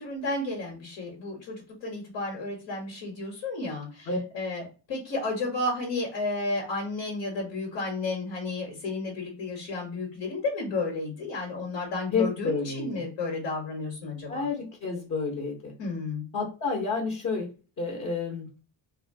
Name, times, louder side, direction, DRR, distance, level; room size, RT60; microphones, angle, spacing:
voice 1, 0.0-4.1 4.3-14.4 15.8-16.2, left 2 dB, 85° left, -1 dB, 1.4 m, -32 dB
voice 2, 12.1-13.0 14.3-15.7 16.3-17.5 17.8-18.5, left 4 dB, 45° left, -2 dB, 1.0 m, -30 dB
2.9 x 2.2 x 2.7 m, 0.34 s
cardioid pair, 120°, 45 cm